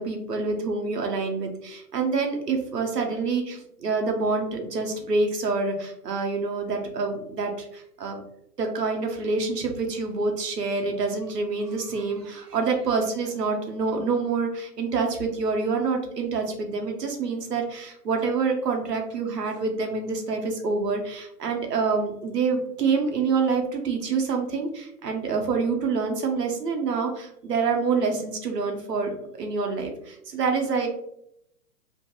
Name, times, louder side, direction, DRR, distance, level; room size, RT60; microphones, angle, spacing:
voice 1, 0.0-8.2 8.6-30.9, right 4 dB, 80° right, 3 dB, 0.8 m, -27 dB
2.7 x 2.5 x 2.3 m, 0.74 s
figure-of-eight pair, 130°, 48 cm